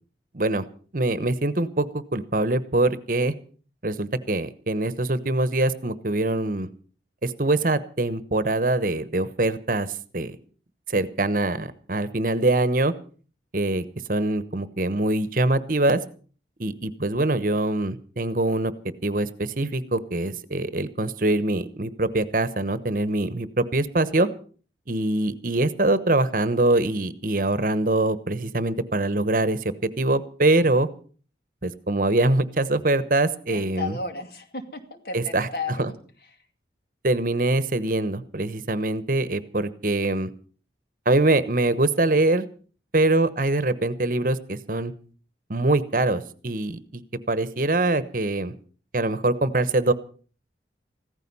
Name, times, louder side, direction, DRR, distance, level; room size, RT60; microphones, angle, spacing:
voice 1, 0.3-0.6 0.9-3.3 3.8-6.7 7.2-10.4 10.9-12.9 13.5-16.0 16.6-18.7 19.0-24.3 24.9-30.9 31.6-33.9 35.1-35.5 35.8-35.9 37.0-40.3 41.1-42.4 42.9-44.9 45.5-47.0 47.3-48.5 48.9-49.9, right 2 dB, 50° right, 14 dB, 1.1 m, -23 dB
voice 2, 33.5-36.0 36.3-36.4, left 3 dB, 55° left, 7 dB, 2.4 m, -34 dB
16.0 x 14.0 x 5.6 m, 0.41 s
head